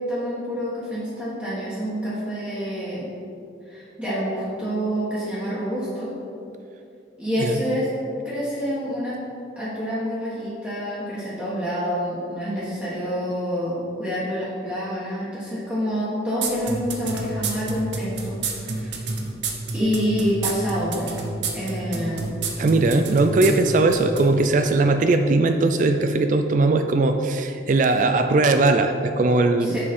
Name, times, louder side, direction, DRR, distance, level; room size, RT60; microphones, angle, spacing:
voice 1, 0.0-3.1 3.7-6.1 7.2-7.9 8.2-9.2 9.5-18.9 19.7-21.1 21.5-22.3 29.6-29.8, equal, 5° right, -11 dB, 1.4 m, -27 dB
sound 1, 16.4-24.3, right 4 dB, 70° right, 0.9 m, -28 dB
voice 2, 22.6-29.8, right 2 dB, 40° right, 7 dB, 0.3 m, -19 dB
6.8 x 5.2 x 5.3 m, 2.6 s
head